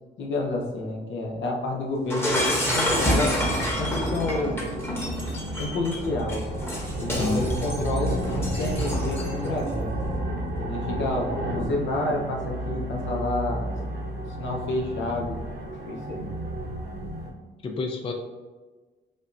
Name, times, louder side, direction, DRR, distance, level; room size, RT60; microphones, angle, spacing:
voice 1, 0.2-3.3 3.8-4.6 5.6-6.5 7.0-9.9 10.5-13.7 14.4-15.4 15.8-16.3, left 2 dB, 70° left, 0 dB, 0.8 m, -29 dB
Shatter, 2.1-9.5, equal, 10° left, 1.0 m, -28 dB
sound 1, 2.7-17.3, right 1 dB, 55° right, 0.8 m, -31 dB
voice 2, 7.1-7.5 17.6-18.1, left 3 dB, 25° left, 3 dB, 0.4 m, -28 dB
5.1 x 2.1 x 2.6 m, 1.3 s
cardioid pair, 90°, 20 cm